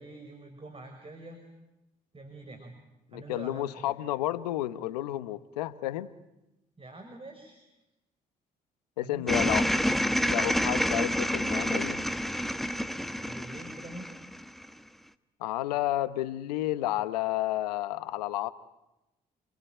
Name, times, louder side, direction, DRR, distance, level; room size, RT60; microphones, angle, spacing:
voice 1, 0.0-1.4 2.1-2.8 3.1-4.0 6.8-7.6 9.0-10.3 13.1-14.2, right 2 dB, 25° right, 5 dB, 5.7 m, -45 dB
voice 2, 3.1-6.1 9.0-9.7 10.3-12.1 15.4-18.5, left 15 dB, 85° left, 15 dB, 1.0 m, -31 dB
sound 1, 9.3-14.7, equal, ahead, 1.4 m, -28 dB
29.5 x 21.0 x 9.1 m, 0.95 s
hypercardioid pair, 50°, 20 cm